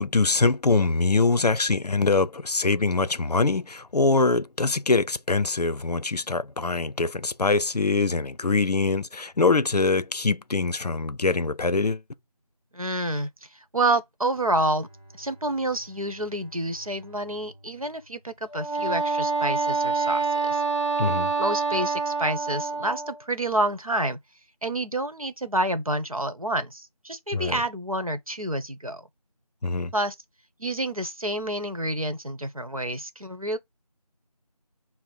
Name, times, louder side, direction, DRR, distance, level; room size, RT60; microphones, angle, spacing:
voice 1, 0.0-12.0 21.0-21.3 27.3-27.6 29.6-29.9, left 3 dB, 85° left, 0.5 m, -23 dB
voice 2, 12.7-13.3 13.7-14.9 15.1-20.6 21.4-24.2 24.6-29.0 29.9-30.1 30.6-33.6, right 1 dB, 60° right, 0.9 m, -28 dB
Bowed string instrument, 14.3-19.2, right 1 dB, 15° left, 3.9 m, -52 dB
Wind instrument woodwind instrument, 18.5-23.2, right 4 dB, 50° left, 0.7 m, -26 dB
6.0 x 2.0 x 3.9 m
figure-of-eight pair, 180°, 20 cm